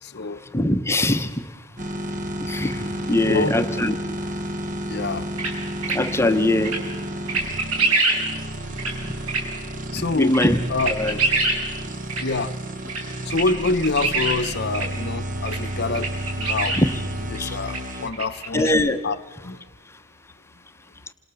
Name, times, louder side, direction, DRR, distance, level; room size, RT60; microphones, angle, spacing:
voice 1, 0.0-0.4 3.2-3.5 4.9-5.3 9.9-10.4 10.7-11.0 12.2-12.5 13.2-16.8 17.3-18.7 19.0-19.2 19.4-19.6, left 3 dB, 50° left, 0.9 m, -26 dB
voice 2, 0.5-1.3 2.5-3.9 5.9-6.7 10.1-10.6 10.9-11.2 16.8-16.9 17.4-17.6 18.5-19.0, left 1 dB, 10° left, 1.0 m, -21 dB
sound 1, 1.8-18.1, right 1 dB, 35° right, 1.5 m, -31 dB
sound 2, 5.4-5.5 5.8-6.0 6.6-6.8 7.3-8.2 8.8-8.9 9.3-9.4 10.0-10.1 10.3-10.5 10.8-11.6 12.1-12.2 12.9-13.0 13.3-14.4 14.7-14.9 15.4-15.6 15.9-16.8 17.3-17.4 17.7-17.8 18.1-18.7, right 3 dB, 70° right, 6.2 m, -23 dB
28.0 x 26.5 x 7.1 m
head